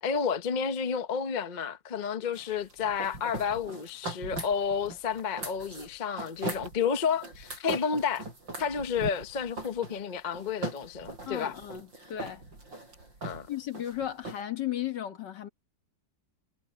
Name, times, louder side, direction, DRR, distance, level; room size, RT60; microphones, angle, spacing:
voice 1, 0.0-8.2 8.6-11.6 13.2-13.5, left 6 dB, 40° left, 0.6 m, -31 dB
sound 1, 2.3-14.4, right 2 dB, 70° right, 7.0 m, -40 dB
voice 2, 11.3-12.4 13.5-15.5, left 11 dB, 65° left, 1.9 m, -35 dB
omnidirectional pair, 2.1 m